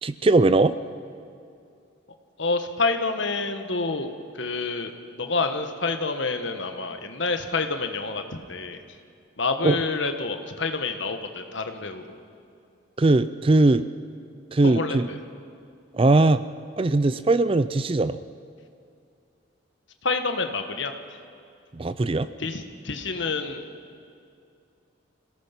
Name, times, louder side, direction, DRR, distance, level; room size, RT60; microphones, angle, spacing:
voice 1, 0.0-0.7 9.6-9.8 13.0-13.8 14.5-15.1 15.9-16.4 16.8-18.2 21.7-22.3, right 2 dB, 25° right, 13 dB, 0.4 m, -20 dB
voice 2, 2.4-4.1 4.3-8.8 9.4-12.2 14.6-15.2 20.0-20.9 22.4-23.6, left 3 dB, 60° left, 7 dB, 1.4 m, -28 dB
26.5 x 17.5 x 6.0 m, 2.5 s
head